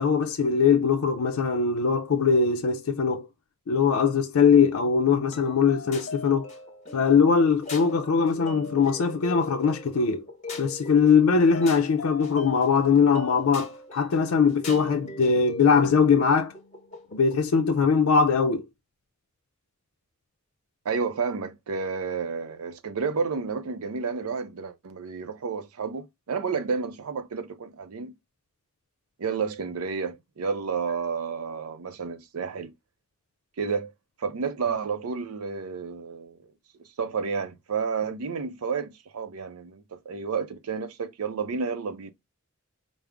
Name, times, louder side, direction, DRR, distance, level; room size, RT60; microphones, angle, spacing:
voice 1, 0.0-3.3 3.7-6.5 6.9-10.2 10.6-16.5 17.1-18.6, left 5 dB, 80° left, 0.5 m, -21 dB
sound 1, 5.3-17.5, left 2 dB, 35° left, 1.1 m, -40 dB
voice 2, 20.8-28.1 29.2-32.7 33.6-33.9 34.2-36.4 37.0-42.1, right 5 dB, 85° right, 0.5 m, -31 dB
5.0 x 2.0 x 3.4 m
head